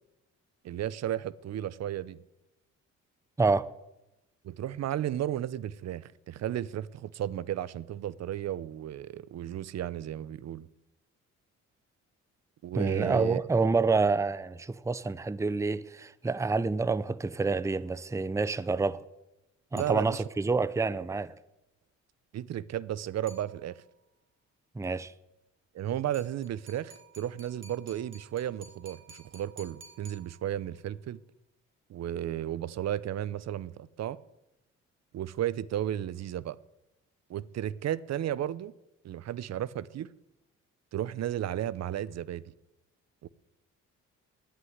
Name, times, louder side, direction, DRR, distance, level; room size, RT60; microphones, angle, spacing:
voice 1, 0.6-2.2 4.4-10.7 12.6-13.5 19.7-20.2 22.3-23.8 25.7-31.2 31.9-34.2 35.1-36.6 37.3-38.7 39.0-40.1 40.9-42.4 43.2-43.3, right 11 dB, 60° right, 0.7 m, -34 dB
voice 2, 3.4-3.7 12.7-19.0 19.7-21.3 24.7-25.1, right 4 dB, 10° right, 0.6 m, -28 dB
sound 1, 19.8-20.5 23.3-24.0 26.1-30.8, right 3 dB, 40° right, 3.0 m, -54 dB
11.5 x 9.9 x 9.5 m
cardioid pair, 90°, 30 cm